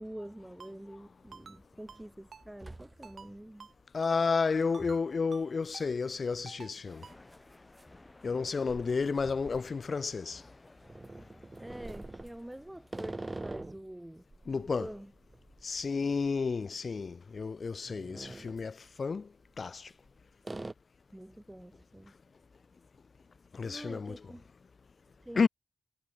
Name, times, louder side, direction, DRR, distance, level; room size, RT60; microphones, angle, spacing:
voice 1, 0.0-3.7 11.6-14.2 14.5-15.1 21.1-22.1 23.6-24.4 25.2-25.5, right 1 dB, 10° right, 0.6 m, -46 dB
Ringtone, 0.6-0.7 1.3-1.6 1.9-2.0 2.3-2.4 3.0-3.3 3.6-3.7 4.0-4.2 4.7-5.0 5.3-5.4 5.7-5.9 6.4-6.7 7.0-7.2, right 5 dB, 70° right, 0.9 m, -50 dB
sound 1, 1.0-1.1 1.6-2.1 2.3-3.4 3.7-3.8 4.8-5.0 5.7-5.9 6.1-6.2 7.2-10.3 10.8-13.9 14.3-16.7 16.9-17.1 17.6-18.7 19.5-20.1 20.4-20.7, right 2 dB, 30° right, 2.6 m, -45 dB
voice 2, 3.9-7.0 8.2-10.4 14.5-14.9 15.6-18.7 19.0-19.3 19.6-19.8 23.5-24.2 25.4-25.5, left 4 dB, 60° left, 0.3 m, -31 dB
sound 2, 6.9-13.9, left 2 dB, 30° left, 6.3 m, -57 dB
supercardioid pair, 40°, 0 cm